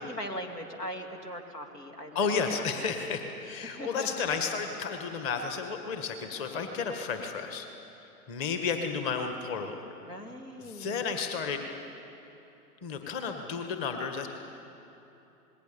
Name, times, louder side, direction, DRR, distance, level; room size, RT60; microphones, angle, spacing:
voice 1, 0.1-2.2 2.6-2.7 3.6-4.3 10.0-11.0, equal, 85° left, 4 dB, 2.8 m, -40 dB
voice 2, 2.2-7.7 8.3-9.9 10.6-11.6 12.8-14.3, left 5 dB, 30° left, 5 dB, 1.8 m, -32 dB
27.5 x 20.0 x 7.1 m, 3.0 s
figure-of-eight pair, 115°, 46 cm